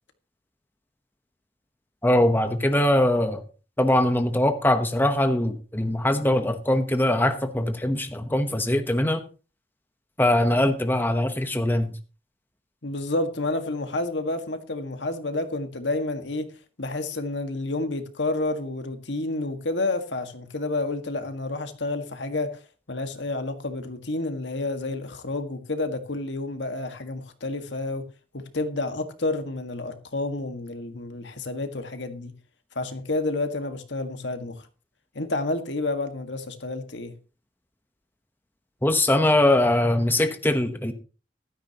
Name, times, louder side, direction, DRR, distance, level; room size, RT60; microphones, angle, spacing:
voice 1, 2.0-3.4 3.8-9.2 10.2-12.0 38.8-40.9, left 1 dB, 10° left, 1.0 m, -22 dB
voice 2, 12.8-16.5 16.8-28.1 28.3-32.3 32.8-34.7 35.2-37.1, left 2 dB, 70° left, 1.8 m, -30 dB
15.5 x 13.0 x 3.0 m
head